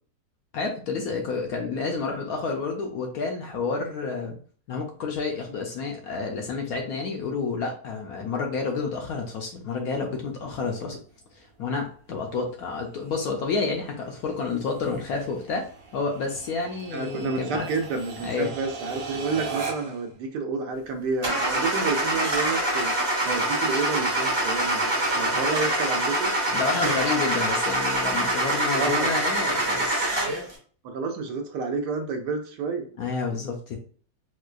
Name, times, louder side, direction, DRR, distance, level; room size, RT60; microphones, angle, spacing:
voice 1, 0.5-4.4 4.7-11.0 11.3-15.7 15.9-17.7 18.2-18.5 26.5-30.1 33.0-33.8, left 4 dB, 70° left, 2 dB, 0.9 m, -29 dB
sound 1, 9.8-20.1, right 5 dB, 60° right, 1.0 m, -40 dB
voice 2, 16.9-22.9 23.2-26.3 28.7-29.1 30.8-32.9, right 4 dB, 75° right, 4 dB, 1.2 m, -30 dB
Car / Engine starting, 21.2-30.5, right 1 dB, 25° right, 0.5 m, -25 dB
4.3 x 2.3 x 2.4 m, 0.43 s
omnidirectional pair, 1.9 m